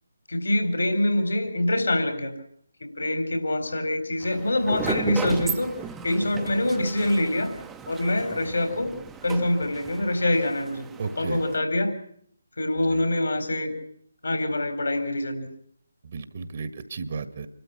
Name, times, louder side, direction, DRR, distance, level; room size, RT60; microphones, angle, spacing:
voice 1, 0.3-2.3 2.8-5.7 6.0-7.5 7.9-8.9 9.2-10.8 11.2-11.9 12.6-13.7 14.2-15.5, left 1 dB, 70° left, 8 dB, 4.3 m, -25 dB
sound 1, 4.2-11.6, right 6 dB, 10° right, 0.9 m, -36 dB
voice 2, 11.0-11.4 12.8-13.0 16.0-17.5, right 4 dB, 45° right, 12 dB, 1.6 m, -34 dB
27.0 x 13.0 x 9.7 m, 0.63 s
figure-of-eight pair, 150°, 0 cm